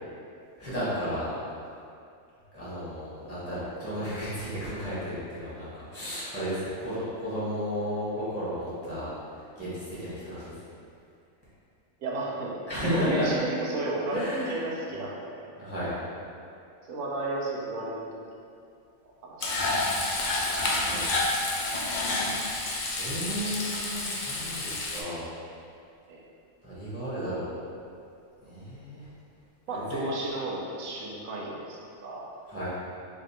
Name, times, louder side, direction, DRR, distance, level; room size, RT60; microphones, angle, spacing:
voice 1, 0.6-1.3 2.5-9.1 9.6-10.6 12.7-13.3 14.1-14.6 15.6-15.9 20.7-21.2 23.0-25.3 26.6-27.5 28.4-29.1 29.7-30.1 32.5-32.7, equal, 10° right, -11 dB, 1.0 m, -33 dB
voice 2, 12.0-12.5 12.8-15.5 15.9-16.0 16.9-18.1 19.2-19.7 20.1-20.2 26.1-26.2 29.7-32.3, right 2 dB, 90° right, -3 dB, 1.1 m, -33 dB
Frying (food), 19.4-25.0, left 2 dB, 60° left, 0.5 m, -29 dB
3.5 x 2.5 x 4.1 m, 2.4 s
omnidirectional pair, 1.3 m